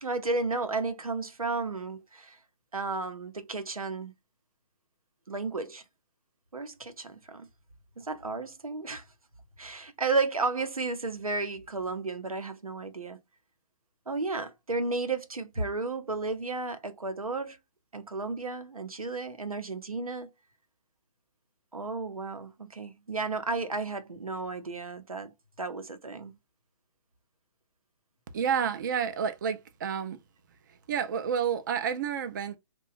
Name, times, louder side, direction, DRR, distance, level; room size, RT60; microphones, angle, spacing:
voice 1, 0.0-2.4 2.7-4.1 5.3-5.8 6.5-7.5 8.0-9.0 9.6-13.2 14.1-17.6 17.9-20.3 21.7-26.3, right 3 dB, 90° right, 0.6 m, -33 dB
voice 2, 28.3-30.2 30.7-32.6, right 7 dB, 35° right, 0.4 m, -30 dB
2.9 x 2.2 x 2.4 m
figure-of-eight pair, 135°, 18 cm